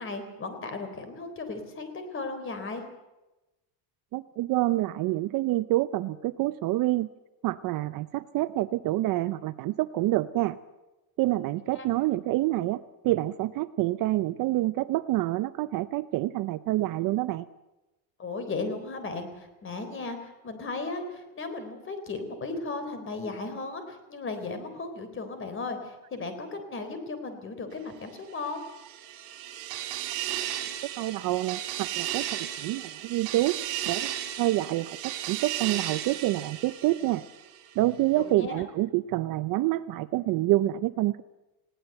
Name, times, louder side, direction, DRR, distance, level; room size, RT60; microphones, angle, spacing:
voice 1, 0.0-2.8 11.7-11.9 18.2-28.6 38.2-38.6, left 3 dB, 25° left, 8 dB, 3.7 m, -36 dB
voice 2, 4.1-7.1 7.4-10.6 11.2-17.4 31.0-33.6 33.9-34.1 34.4-37.2 37.8-41.2, right 16 dB, 45° right, 14 dB, 0.6 m, -27 dB
Train sound, 28.5-37.6, right 12 dB, 65° right, 3.6 m, -35 dB
20.0 x 17.0 x 7.9 m, 1.0 s
cardioid pair, 140°, 48 cm